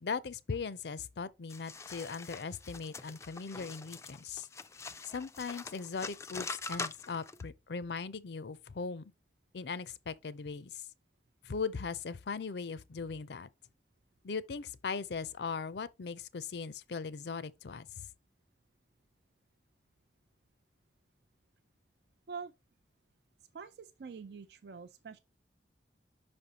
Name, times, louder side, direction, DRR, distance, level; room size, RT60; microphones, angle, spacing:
voice 1, 0.0-4.5 5.0-9.0 9.5-10.8 11.4-13.5 14.2-17.9, left 5 dB, 70° left, 0.5 m, -39 dB
sound 1, 1.5-7.4, left 4 dB, 15° left, 0.3 m, -44 dB
voice 2, 23.5-25.2, right 5 dB, 65° right, 0.4 m, -45 dB
5.5 x 5.2 x 4.1 m
head